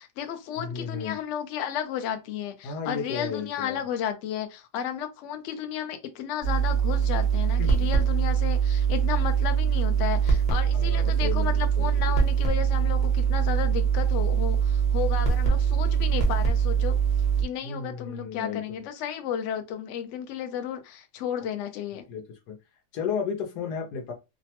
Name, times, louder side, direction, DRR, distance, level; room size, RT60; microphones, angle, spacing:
voice 1, 0.0-17.0 17.4-22.1, left 9 dB, 65° left, 0.8 m, -33 dB
voice 2, 0.6-1.2 2.6-3.8 7.6-7.7 10.7-12.2 17.6-18.8 21.4-21.5 21.9-22.6 22.9-24.1, left 6 dB, 85° left, 1.3 m, -34 dB
sound 1, 6.4-17.4, right 7 dB, 35° left, 0.9 m, -23 dB
3.0 x 2.1 x 2.8 m
omnidirectional pair, 1.7 m